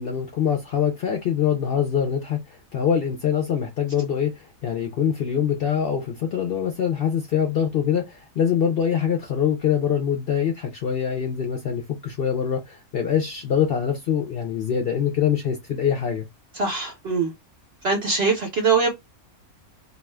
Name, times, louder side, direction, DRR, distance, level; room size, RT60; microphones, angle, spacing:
voice 1, 0.0-16.3, left 8 dB, 60° left, 0.6 m, -24 dB
voice 2, 16.6-17.3 17.8-18.9, right 4 dB, 55° right, 0.7 m, -22 dB
2.4 x 2.3 x 3.2 m
omnidirectional pair, 1.5 m